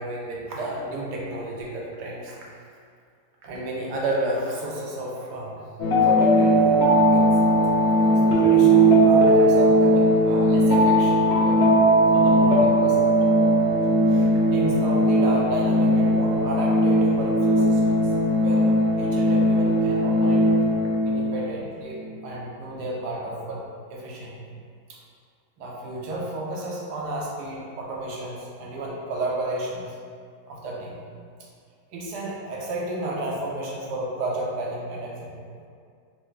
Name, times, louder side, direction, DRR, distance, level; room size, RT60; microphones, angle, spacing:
voice 1, 0.0-2.4 3.4-5.6 6.0-7.3 7.9-11.7 12.1-13.1 14.1-18.1 18.4-20.5 21.0-23.6 23.9-24.3 24.9-25.0 25.6-29.9 30.5-31.0 31.9-35.3 35.6-35.7, right 1 dB, 75° right, -3 dB, 1.3 m, -32 dB
sound 1, 5.8-21.5, right 1 dB, 60° left, 0.7 m, -19 dB
4.6 x 2.2 x 3.2 m, 2.2 s
omnidirectional pair, 1.9 m